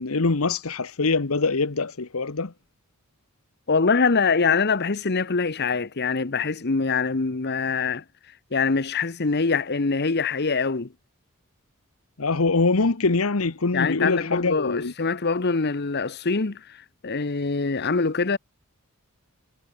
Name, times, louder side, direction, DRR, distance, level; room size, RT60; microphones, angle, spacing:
voice 1, 0.0-2.5 12.2-14.9, left 3 dB, 70° left, 1.1 m, -23 dB
voice 2, 3.7-8.0 8.5-10.9 13.7-16.6 17.0-18.4, left 4 dB, 50° left, 1.0 m, -24 dB
head